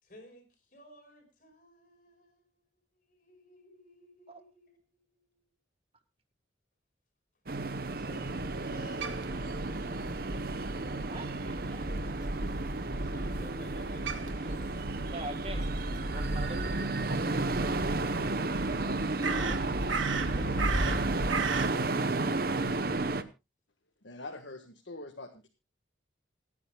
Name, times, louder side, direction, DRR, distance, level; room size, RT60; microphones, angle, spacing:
voice 1, 0.0-2.6 2.9-5.5 8.0-11.0 13.0-15.3 18.0-19.0 20.3-23.0, left 1 dB, 45° left, 4 dB, 5.2 m, -55 dB
sound 1, 7.5-23.2, right 3 dB, 50° right, 0.9 m, -33 dB
Crow, 8.2-21.7, right 2 dB, 90° right, 1.6 m, -36 dB
voice 2, 10.8-12.3 15.1-15.7 16.1-17.3 19.2-19.7, right 1 dB, 30° right, 8 dB, 1.6 m, -44 dB
voice 3, 24.0-25.5, left 2 dB, 75° left, 3 dB, 1.6 m, -44 dB
29.0 x 9.8 x 2.3 m, 0.27 s
head